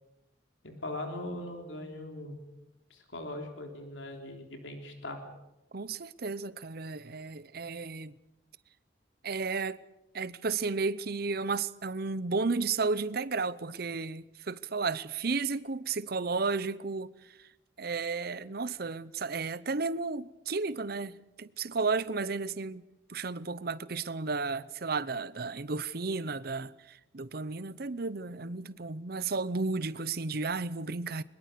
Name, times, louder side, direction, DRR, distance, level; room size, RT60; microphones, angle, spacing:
voice 1, 0.6-2.4 2.9-5.3, left 1 dB, 80° left, 3.6 m, -40 dB
voice 2, 5.7-8.1 9.2-9.8 10.1-17.1 17.8-22.8 23.1-31.2, right 4 dB, 55° right, 0.8 m, -33 dB
23.0 x 21.5 x 6.8 m
head